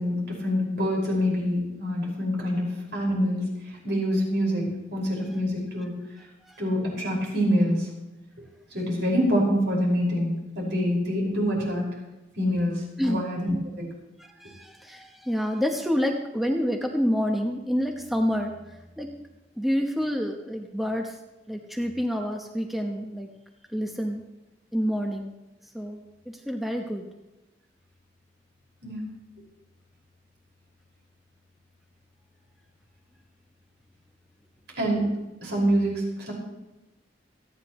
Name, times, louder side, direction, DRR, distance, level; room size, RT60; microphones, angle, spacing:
voice 1, 0.0-3.5 3.8-5.9 6.6-7.9 8.7-11.9 12.4-13.9 28.8-29.0 34.8-35.1 35.4-36.3, equal, 70° right, -3 dB, 5.5 m, -26 dB
voice 2, 14.2-19.1 19.6-21.2 21.5-23.3 23.7-24.2 24.7-25.3 25.7-27.1, equal, ahead, 2 dB, 1.0 m, -28 dB
28.0 x 9.8 x 3.1 m, 1.0 s
head